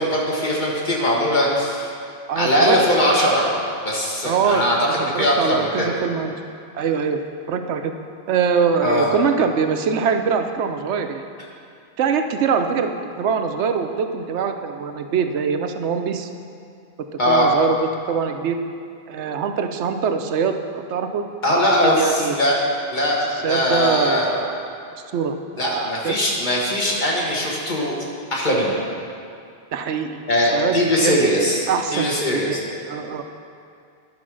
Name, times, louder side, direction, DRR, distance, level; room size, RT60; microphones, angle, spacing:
voice 1, 0.0-1.9 2.3-3.5 3.8-5.9 8.8-9.1 17.2-17.5 21.4-22.6 22.9-24.3 25.6-28.0 28.3-28.7 30.3-31.6 31.9-32.6, equal, 45° left, -3 dB, 1.7 m, -20 dB
voice 2, 2.3-2.8 4.2-4.6 5.1-6.3 6.7-7.2 7.5-7.9 8.3-11.2 12.0-16.3 17.3-18.6 19.1-21.2 21.8-22.4 23.3-24.8 25.1-26.2 29.7-30.2 30.5-31.2 31.7-32.6 32.9-33.2, right 6 dB, 85° right, 6 dB, 0.9 m, -23 dB
10.5 x 5.1 x 6.2 m, 2.4 s
omnidirectional pair, 1.2 m